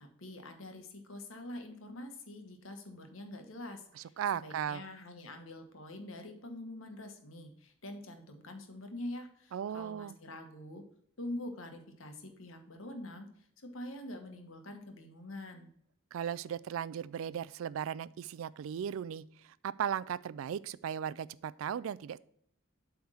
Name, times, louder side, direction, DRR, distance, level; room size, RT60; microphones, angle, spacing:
voice 1, 0.0-10.8 11.2-15.7, left 1 dB, 75° left, 5 dB, 1.3 m, -45 dB
voice 2, 4.2-4.8 9.5-10.2 16.1-19.2 19.6-22.2, right 8 dB, 70° right, 19 dB, 0.3 m, -36 dB
7.9 x 3.5 x 6.2 m, 0.67 s
head